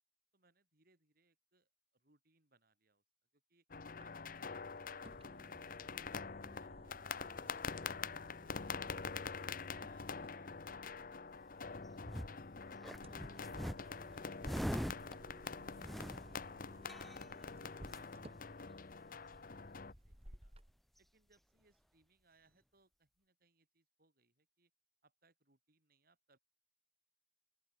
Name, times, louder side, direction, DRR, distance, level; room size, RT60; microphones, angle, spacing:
voice 1, 0.3-3.0 3.3-3.6 4.0-5.3 5.7-9.0 9.3-12.7 13.1-17.5 17.8-20.5 21.0-24.7 25.0-26.4, right 3 dB, 60° right, 6.5 m, -74 dB
sound 1, 3.7-19.9, left 5 dB, 55° left, 1.0 m, -46 dB
sound 2, 3.9-20.7, right 1 dB, 35° right, 6.3 m, -61 dB
sound 3, 11.5-12.4 12.8-17.5 17.9-18.0 18.3-18.7 19.0-19.1 19.3-20.1 21.0-21.1, equal, ahead, 0.5 m, -44 dB
open air
head